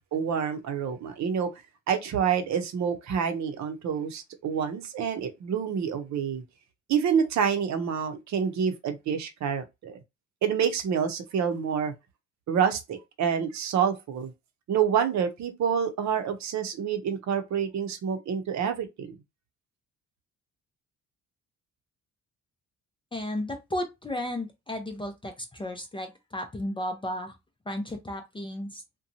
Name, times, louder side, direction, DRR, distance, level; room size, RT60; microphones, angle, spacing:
voice 1, 0.1-1.5 1.9-6.4 6.9-10.0 10.4-11.9 12.5-14.3 14.7-19.1, right 7 dB, 65° right, 0.7 m, -27 dB
voice 2, 23.1-27.3 27.7-28.8, left 1 dB, 15° left, 0.5 m, -34 dB
2.8 x 2.2 x 2.6 m
cardioid pair, 90°, 30 cm